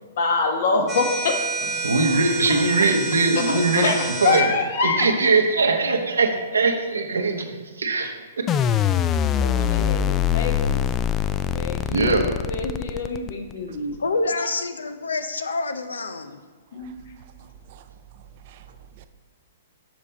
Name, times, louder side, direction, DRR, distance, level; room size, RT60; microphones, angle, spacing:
voice 1, 0.2-1.4 3.5-5.1 9.4-10.8 11.5-12.2 12.5-14.0 16.7-17.0, left 4 dB, 60° left, 1.3 m, -25 dB
sound 1, 0.9-4.5, right 4 dB, 20° right, 0.9 m, -29 dB
voice 2, 1.8-3.9 4.2-4.5 4.8-8.1 11.9-12.3, right 3 dB, 85° right, 1.0 m, -21 dB
sound 2, 8.5-13.5, left 9 dB, 25° left, 0.3 m, -23 dB
voice 3, 14.0-16.4, left 3 dB, 85° left, 0.6 m, -27 dB
voice 4, 16.7-19.1, right 8 dB, 50° right, 0.6 m, -49 dB
7.3 x 5.3 x 4.3 m
hypercardioid pair, 120°, 0 cm